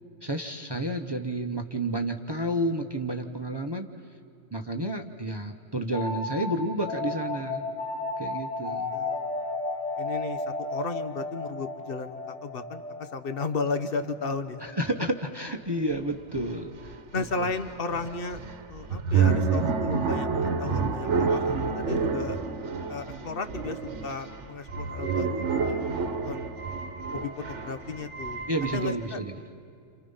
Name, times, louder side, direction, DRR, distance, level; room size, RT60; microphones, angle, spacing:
voice 1, 0.2-3.9 4.5-7.7 8.2-8.9 14.6-17.5 28.5-29.4, right 1 dB, 20° right, 4 dB, 1.0 m, -31 dB
sound 1, 5.9-15.3, left 2 dB, 85° left, 2.6 m, -34 dB
voice 2, 8.0-9.3 10.0-14.6 17.1-18.4 18.7-22.4 22.9-26.5 27.1-29.2, left 4 dB, 50° left, 9 dB, 1.3 m, -34 dB
sound 2, 16.0-16.1 16.3-29.1, right 5 dB, 70° right, 1.4 m, -29 dB
29.5 x 28.5 x 5.6 m, 2.5 s
omnidirectional pair, 1.3 m